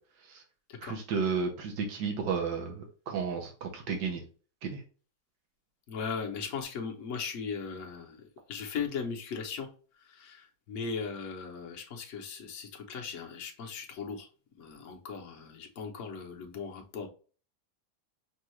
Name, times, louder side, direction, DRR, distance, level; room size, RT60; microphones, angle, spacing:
voice 1, 0.8-4.2 4.6-4.8, right 5 dB, 85° right, 2 dB, 1.6 m, -32 dB
voice 2, 5.9-8.1 8.5-9.7 10.2-14.3 14.6-17.1, left 5 dB, 55° left, 2 dB, 1.1 m, -38 dB
5.4 x 2.4 x 3.0 m, 0.38 s
omnidirectional pair, 1.8 m